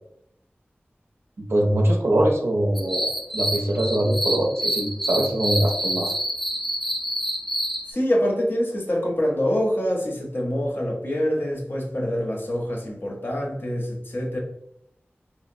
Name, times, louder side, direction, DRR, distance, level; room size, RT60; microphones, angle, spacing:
voice 1, 1.4-6.1, right 1 dB, 80° right, 0 dB, 0.5 m, -23 dB
sound 1, 2.7-7.9, right 1 dB, 5° left, 0.3 m, -27 dB
voice 2, 7.9-14.4, equal, 55° left, -1 dB, 0.7 m, -25 dB
2.8 x 2.0 x 2.5 m, 0.76 s
wide cardioid pair, 55°, 4 cm